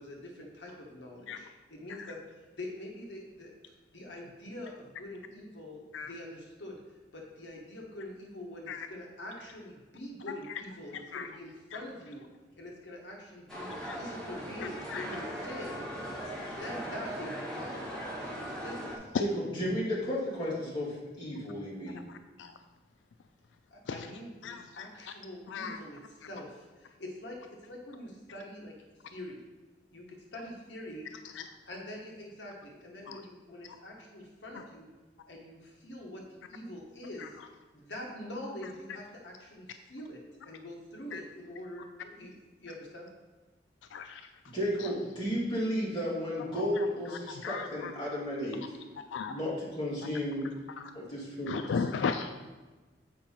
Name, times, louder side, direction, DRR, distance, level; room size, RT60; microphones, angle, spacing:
voice 1, 0.0-6.8 7.1-12.2 12.6-15.8 16.4-18.0 18.2-18.9 23.7-28.8 29.1-29.4 29.9-31.1 31.7-34.9 35.3-37.4 37.7-39.6 39.9-43.1, left 1 dB, 70° left, -1 dB, 1.3 m, -45 dB
voice 2, 10.9-11.3 13.8-14.0 14.9-15.1 19.1-19.2 21.9-22.5 23.9-24.1 24.4-24.9 25.5-25.8 31.4-31.5 33.1-33.2 34.5-34.6 37.2-37.3 41.1-41.2 43.9-44.2 44.8-44.9 46.6-47.9 49.1-49.4 50.8-50.9 51.5-52.3, left 5 dB, 90° left, 8 dB, 0.4 m, -36 dB
sound 1, 13.5-19.0, equal, 5° left, 1.6 m, -39 dB
voice 3, 19.2-22.0 44.5-48.6 49.3-50.5 50.9-51.6, equal, 25° left, -8 dB, 2.4 m, -33 dB
7.7 x 4.7 x 4.4 m, 1.2 s
head